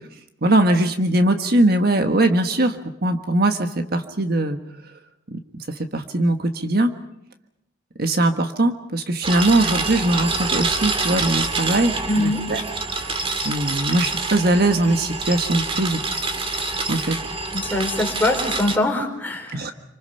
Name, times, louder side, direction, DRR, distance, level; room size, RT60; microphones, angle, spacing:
voice 1, 0.4-4.6 5.3-5.4 5.9-6.9 8.0-12.6 12.9-13.1 13.4-16.0 16.9-17.1 19.5-19.7, right 1 dB, 50° right, 6 dB, 1.4 m, -21 dB
sound 1, 9.2-18.8, right 3 dB, 30° right, 2.3 m, -26 dB
voice 2, 12.1-12.5 17.5-19.7, left 1 dB, 10° left, 1 dB, 4.4 m, -23 dB
28.0 x 26.0 x 5.7 m, 0.81 s
head